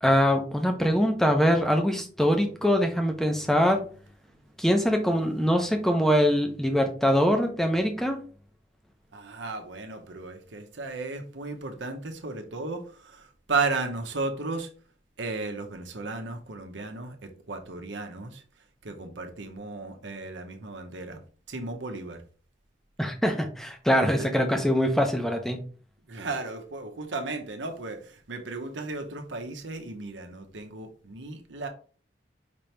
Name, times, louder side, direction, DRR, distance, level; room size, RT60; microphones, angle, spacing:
voice 1, 0.0-3.8 4.6-8.2 23.0-25.6, equal, ahead, 0.6 m, -23 dB
voice 2, 9.1-14.7 15.2-18.4 18.8-21.2 21.5-22.2 24.0-24.3 26.1-31.7, right 3 dB, 80° right, 0.9 m, -34 dB
5.2 x 2.9 x 3.3 m
head